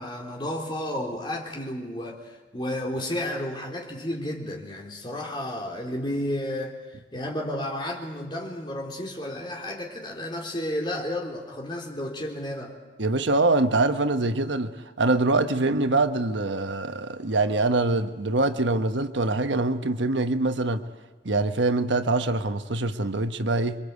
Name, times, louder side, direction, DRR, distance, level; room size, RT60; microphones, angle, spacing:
voice 1, 0.0-12.8, left 1 dB, 25° left, 0 dB, 3.6 m, -32 dB
voice 2, 13.0-20.8 21.2-23.8, right 2 dB, 85° right, 9 dB, 1.2 m, -24 dB
27.5 x 24.0 x 8.3 m, 1.2 s
head